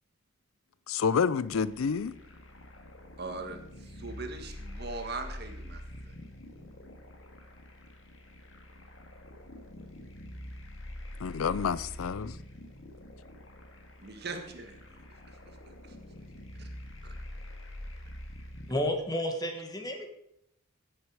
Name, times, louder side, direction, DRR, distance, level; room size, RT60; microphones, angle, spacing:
voice 1, 0.9-2.2 11.2-12.4, left 6 dB, 85° left, 0.5 m, -29 dB
sound 1, 1.4-18.8, left 1 dB, 65° left, 2.2 m, -46 dB
voice 2, 3.2-6.1 14.0-14.8 16.6-16.7, right 3 dB, 50° right, 1.6 m, -40 dB
voice 3, 18.7-20.1, left 1 dB, 20° left, 1.4 m, -31 dB
16.0 x 8.1 x 4.8 m
head